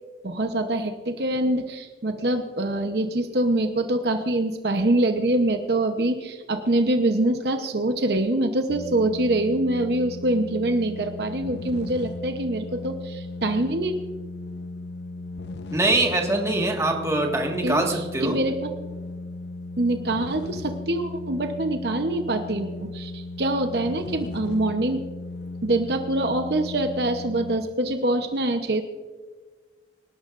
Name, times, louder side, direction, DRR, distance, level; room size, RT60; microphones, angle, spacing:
voice 1, 0.2-13.9 17.6-18.7 19.8-25.0 25.6-28.8, right 1 dB, 60° right, 6 dB, 0.9 m, -24 dB
sound 1, 8.7-27.6, left 2 dB, 70° left, 0.6 m, -36 dB
voice 2, 15.7-18.4, right 2 dB, 15° right, 1 dB, 1.7 m, -23 dB
25.5 x 12.0 x 2.6 m, 1.4 s
head